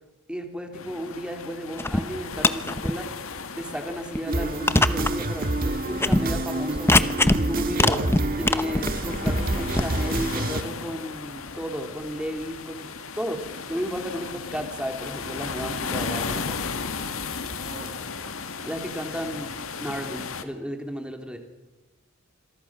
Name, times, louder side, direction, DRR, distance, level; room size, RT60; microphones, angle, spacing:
voice 1, 0.3-3.1 3.6-6.9 7.3-8.0 8.4-12.9 13.2-13.4 13.7-16.6 18.6-19.5 19.8-21.4, equal, 5° right, 4 dB, 3.1 m, -33 dB
sound 1, 0.7-20.4, left 5 dB, 85° left, 1.8 m, -36 dB
sound 2, 1.8-2.0 2.3-2.9 3.4-3.5 4.1-4.2 4.7-5.1 5.4-5.5 6.0-6.2 6.7-7.4 7.7-9.8, left 2 dB, 10° left, 0.9 m, -22 dB
sound 3, 4.3-10.6, right 2 dB, 45° right, 1.6 m, -28 dB
voice 2, 7.7-8.1 17.6-18.1, right 1 dB, 75° right, 1 dB, 6.2 m, -36 dB
27.0 x 22.5 x 6.3 m, 1.1 s
head